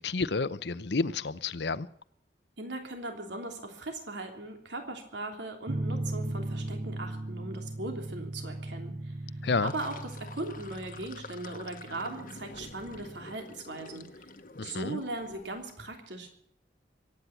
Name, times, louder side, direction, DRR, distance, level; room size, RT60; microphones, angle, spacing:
voice 1, 0.0-1.9 9.4-9.7 14.6-15.0, left 4 dB, 75° left, 0.8 m, -30 dB
voice 2, 2.6-9.2 9.6-14.3 14.6-16.3, right 2 dB, 85° right, 3.2 m, -39 dB
sound 1, 5.7-13.3, right 1 dB, 40° right, 0.6 m, -38 dB
Sink (filling or washing), 9.4-15.7, left 3 dB, 50° left, 1.2 m, -48 dB
23.5 x 9.7 x 5.8 m
head